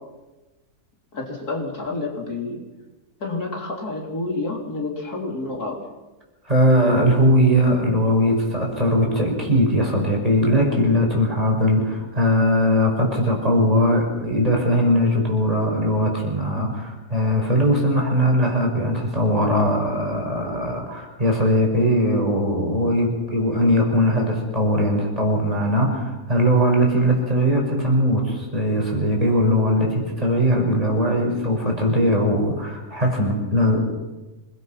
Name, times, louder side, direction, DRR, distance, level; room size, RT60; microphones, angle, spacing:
voice 1, 1.1-2.6 3.2-5.8, left 3 dB, 80° left, -1 dB, 4.3 m, -29 dB
voice 2, 6.5-33.8, equal, 25° right, 0 dB, 5.9 m, -20 dB
26.5 x 20.5 x 5.9 m, 1.1 s
omnidirectional pair, 1.6 m